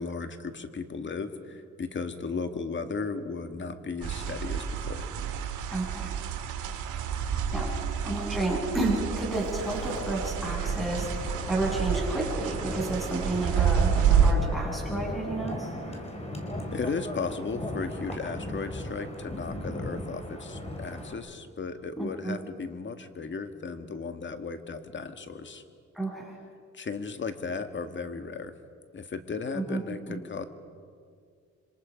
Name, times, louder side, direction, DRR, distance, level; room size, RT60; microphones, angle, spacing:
voice 1, 0.0-5.1 15.9-16.0 16.7-25.6 26.7-28.5 28.9-30.4, left 4 dB, 40° left, 8 dB, 1.9 m, -35 dB
sound 1, 4.0-14.3, right 8 dB, 85° right, 2.2 m, -29 dB
voice 2, 5.7-6.1 7.5-7.7 8.0-15.7 22.0-22.3 25.9-26.4 29.5-29.8 30.1-30.2, right 2 dB, ahead, -2 dB, 7.4 m, -31 dB
Wind, 9.3-21.1, left 1 dB, 20° left, 3.9 m, -38 dB
27.5 x 26.0 x 5.2 m, 2.2 s
cardioid pair, 90°, 30 cm